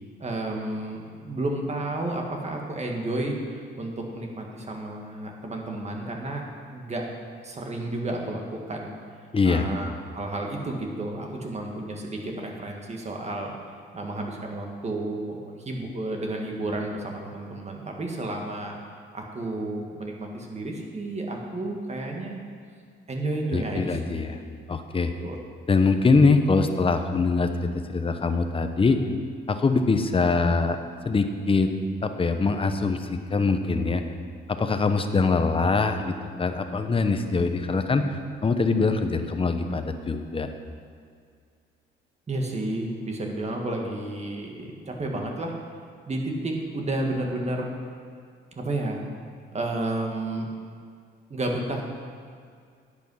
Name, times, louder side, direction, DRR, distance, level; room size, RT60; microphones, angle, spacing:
voice 1, 0.2-6.4 6.7-7.1 7.4-9.0 9.4-9.9 10.1-13.5 13.9-18.8 19.1-22.4 23.1-24.2 25.2-25.4 42.3-45.5 46.1-47.7 48.6-49.0 49.5-50.5 51.3-51.8, right 2 dB, 35° right, 1 dB, 1.9 m, -31 dB
voice 2, 9.3-9.7 23.5-24.4 24.7-25.1 25.7-29.0 29.5-30.8 31.0-31.7 32.0-34.0 34.5-38.2 38.4-40.5, left 4 dB, 25° left, 7 dB, 0.9 m, -23 dB
10.5 x 8.4 x 5.6 m, 2.1 s
cardioid pair, 90°, 20 cm